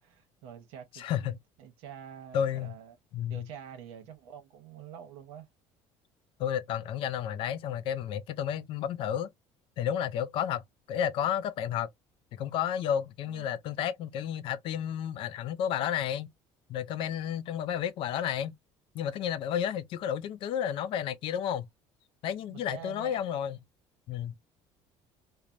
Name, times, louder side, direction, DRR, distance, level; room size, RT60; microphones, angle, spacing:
voice 1, 0.0-3.0 3.3-5.5 13.3-13.5 22.5-23.2, right 8 dB, 75° right, 0.8 m, -47 dB
voice 2, 0.9-1.4 2.3-2.7 3.1-3.5 6.4-9.3 9.8-11.9 12.3-16.3 16.7-18.5 18.9-21.7 22.2-23.6 24.1-24.3, left 9 dB, 55° left, 0.4 m, -31 dB
3.1 x 2.0 x 2.4 m
cardioid pair, 160°, 11 cm